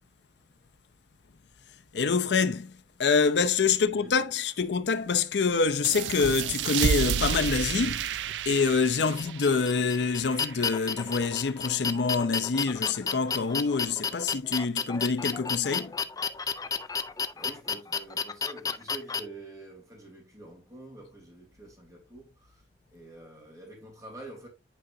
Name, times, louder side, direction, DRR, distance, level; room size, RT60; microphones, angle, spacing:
voice 1, 1.9-2.7 3.0-8.1 8.5-15.9, left 5 dB, 75° left, 0.6 m, -26 dB
voice 2, 3.8-4.6 16.8-22.7 22.9-24.5, right 1 dB, 20° right, 3.2 m, -47 dB
sound 1, 5.8-11.1, right 8 dB, 90° right, 0.4 m, -31 dB
sound 2, 9.2-19.2, left 6 dB, 20° left, 0.5 m, -32 dB
9.2 x 4.8 x 2.7 m
head